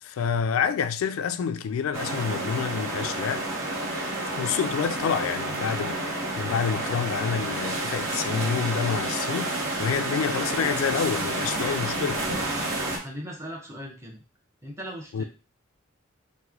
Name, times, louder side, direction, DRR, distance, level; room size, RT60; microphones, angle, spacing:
voice 1, 0.0-3.4 4.4-12.2 15.1-15.2, left 7 dB, 85° left, 0.3 m, -28 dB
sound 1, 1.9-13.0, right 2 dB, 70° right, 0.9 m, -30 dB
voice 2, 12.8-14.2 14.6-15.2, equal, 15° right, 0.7 m, -39 dB
3.0 x 2.1 x 3.6 m
head